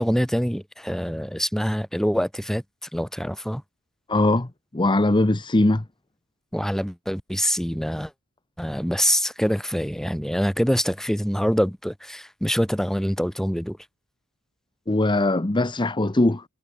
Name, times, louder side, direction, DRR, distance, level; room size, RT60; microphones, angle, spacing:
voice 1, 0.0-2.6 2.9-3.6 6.5-8.1 8.6-13.8, equal, ahead, 3.8 m, -25 dB
voice 2, 4.1-5.8 14.9-16.4, left 2 dB, 20° left, 0.9 m, -21 dB
head